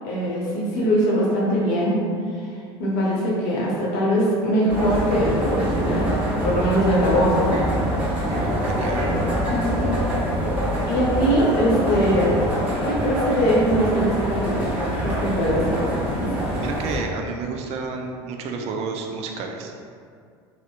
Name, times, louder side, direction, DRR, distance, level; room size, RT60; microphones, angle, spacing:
voice 1, 0.0-2.0 2.3-2.5 2.8-6.1 6.4-7.6 9.1-9.9 10.9-12.4 12.8-15.9 16.2-16.5, equal, 65° left, -5 dB, 0.8 m, -22 dB
sound 1, 4.7-17.0, equal, 10° right, 1.2 m, -25 dB
voice 2, 8.3-9.1 16.6-19.7, right 4 dB, 50° right, 3 dB, 0.4 m, -30 dB
2.6 x 2.0 x 2.4 m, 2.2 s
hypercardioid pair, 75°, 14 cm